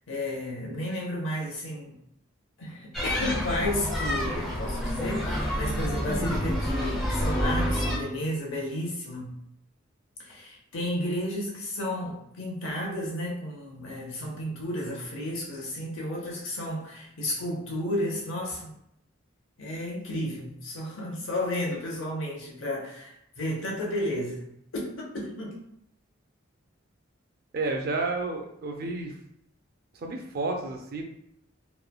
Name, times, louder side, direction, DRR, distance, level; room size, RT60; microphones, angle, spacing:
voice 1, 0.1-2.0 2.6-9.4 10.2-18.7 19.6-24.5 24.7-25.7, left 1 dB, 75° left, -2 dB, 0.8 m, -32 dB
sound 1, 2.9-8.0, equal, ahead, 0.5 m, -28 dB
voice 2, 27.5-29.2 29.9-31.0, right 3 dB, 50° right, 3 dB, 0.4 m, -31 dB
3.1 x 2.2 x 2.2 m, 0.75 s
head